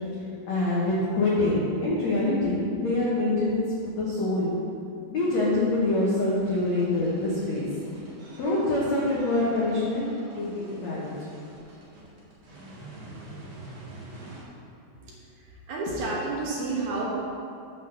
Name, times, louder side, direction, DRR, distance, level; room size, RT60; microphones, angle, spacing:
voice 1, 0.5-4.5 5.1-7.6 8.4-10.0 10.3-11.1, left 2 dB, 85° left, -7 dB, 1.5 m, -25 dB
sound 1, 6.4-14.4, right 2 dB, 50° right, 2.1 m, -46 dB
voice 2, 15.5-17.2, right 3 dB, 80° right, -4 dB, 1.7 m, -30 dB
7.4 x 5.8 x 6.8 m, 2.6 s
omnidirectional pair, 5.3 m